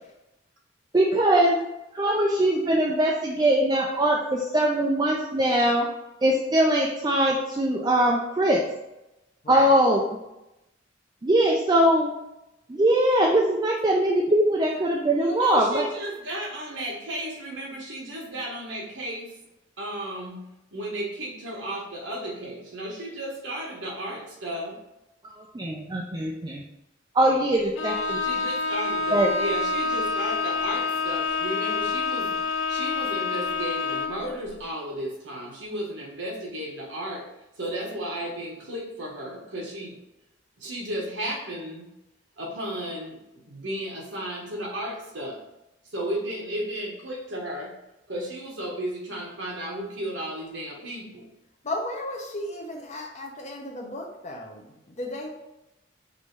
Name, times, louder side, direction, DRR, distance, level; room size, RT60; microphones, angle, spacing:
voice 1, 0.9-1.6 1.9-5.9 6.2-8.7 9.5-10.0 11.2-12.1 12.7-15.8 25.3-26.6 27.1-28.2 29.1-29.3, right 1 dB, 20° right, -2 dB, 0.4 m, -22 dB
voice 2, 15.1-19.4 19.8-20.4 20.7-24.8 28.2-32.4 32.7-37.3 37.6-40.0 40.6-41.9 42.4-45.4 45.8-47.8 48.1-51.3, right 1 dB, 70° right, -1 dB, 1.1 m, -34 dB
Bowed string instrument, 27.7-34.3, left 3 dB, 80° left, 0.5 m, -27 dB
voice 3, 51.6-55.3, left 1 dB, 35° left, 1 dB, 0.7 m, -34 dB
5.3 x 2.7 x 3.2 m, 0.92 s
head